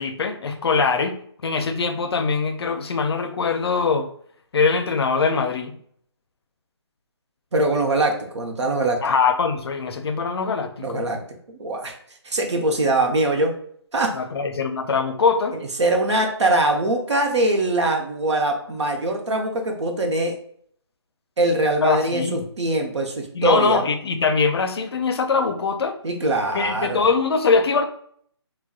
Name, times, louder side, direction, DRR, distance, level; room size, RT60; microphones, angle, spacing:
voice 1, 0.0-4.1 4.5-5.7 9.0-11.0 14.1-15.6 21.8-22.4 23.3-26.0 26.5-27.8, left 5 dB, 60° left, 7 dB, 0.5 m, -22 dB
voice 2, 7.5-9.0 10.8-11.2 11.6-11.9 12.2-13.5 13.9-14.1 15.8-20.3 21.4-23.8 26.0-27.1, right 2 dB, 75° right, 2 dB, 0.8 m, -22 dB
3.5 x 2.2 x 2.3 m, 0.62 s
hypercardioid pair, 160°, 15 cm